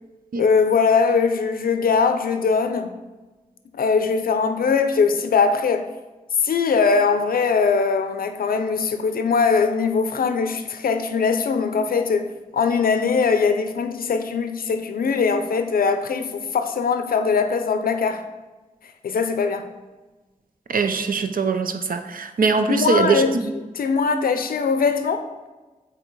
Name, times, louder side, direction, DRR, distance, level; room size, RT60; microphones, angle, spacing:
voice 1, 0.4-3.0 3.7-5.9 6.4-18.2 19.0-19.7 22.7-23.4 23.7-25.3, left 5 dB, 90° left, 0.5 m, -21 dB
voice 2, 20.7-23.5, right 4 dB, 75° right, 0.5 m, -22 dB
8.0 x 2.9 x 4.6 m
cardioid pair, 45°, 15 cm